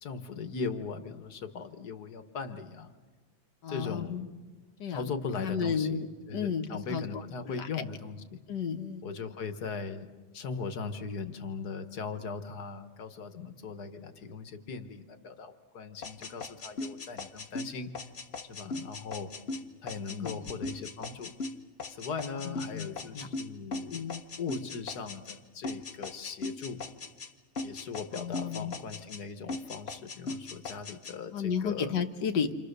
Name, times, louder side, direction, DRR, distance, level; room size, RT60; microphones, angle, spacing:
voice 1, 0.0-2.9 3.7-4.2 4.9-6.0 6.3-8.4 9.0-10.1 10.3-17.9 18.5-19.3 19.8-21.3 21.9-24.0 24.4-26.8 27.6-31.9, left 5 dB, 70° left, 8 dB, 1.8 m, -39 dB
voice 2, 3.6-4.3 4.8-5.1 5.4-6.1 6.3-7.7 8.5-9.0 20.1-20.4 22.4-22.9 23.1-23.3 23.9-24.2 28.1-28.8 31.3-32.5, left 7 dB, 85° left, 6 dB, 1.9 m, -33 dB
sound 1, 16.0-25.4 25.6-27.3 27.5-29.2 29.5-31.1, left 3 dB, 40° left, 1.2 m, -39 dB
28.5 x 26.5 x 6.7 m, 1.4 s
omnidirectional pair, 1.8 m